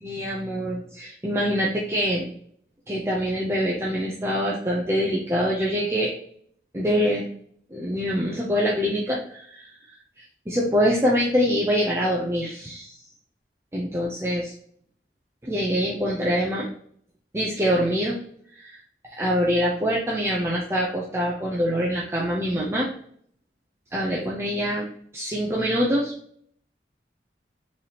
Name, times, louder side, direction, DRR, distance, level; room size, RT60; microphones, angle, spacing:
voice 1, 0.0-2.3 2.9-6.2 6.7-7.3 7.7-9.7 10.5-13.0 13.7-14.5 15.4-16.7 17.3-18.2 18.6-18.8 19.2-22.9 23.9-24.9 25.1-26.1, equal, 15° right, -4 dB, 0.6 m, -24 dB
4.0 x 3.4 x 2.8 m, 0.62 s
head